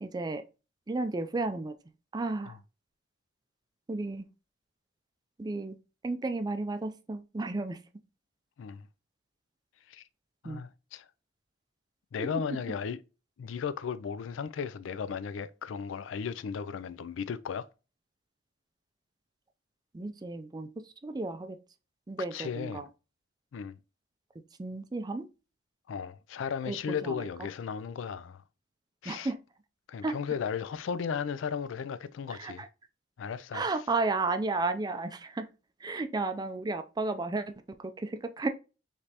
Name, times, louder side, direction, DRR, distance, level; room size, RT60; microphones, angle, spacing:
voice 1, 0.0-0.4 0.9-1.7 2.1-2.6 3.9-4.3 5.4-5.8 6.0-7.8 10.4-10.7 12.2-12.3 19.9-21.6 22.1-22.9 24.6-25.3 26.7-27.3 29.1-29.4 30.0-30.1 32.3-32.7 33.5-35.5 35.8-38.5, right 3 dB, 20° right, 0.4 m, -33 dB
voice 2, 10.4-11.1 12.1-13.0 13.4-17.7 22.3-22.8 23.5-23.8 25.9-28.4 29.0-29.3 29.9-32.7 33.2-33.7, left 6 dB, 80° left, 0.4 m, -35 dB
5.0 x 3.3 x 2.8 m
head